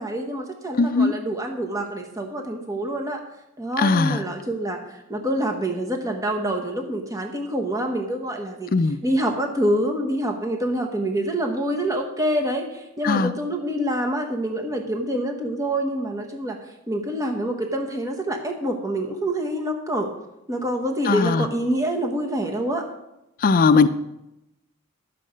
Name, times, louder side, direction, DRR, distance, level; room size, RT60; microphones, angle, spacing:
voice 1, 0.0-3.2 3.6-8.7 9.0-16.6 16.9-20.1 20.5-22.9, right 1 dB, 15° right, 3 dB, 1.1 m, -26 dB
voice 2, 0.8-1.1 3.8-4.2 8.7-9.0 13.0-13.3 21.1-21.5 23.4-23.9, left 4 dB, 40° left, 12 dB, 0.4 m, -18 dB
11.5 x 7.6 x 5.1 m, 0.89 s
head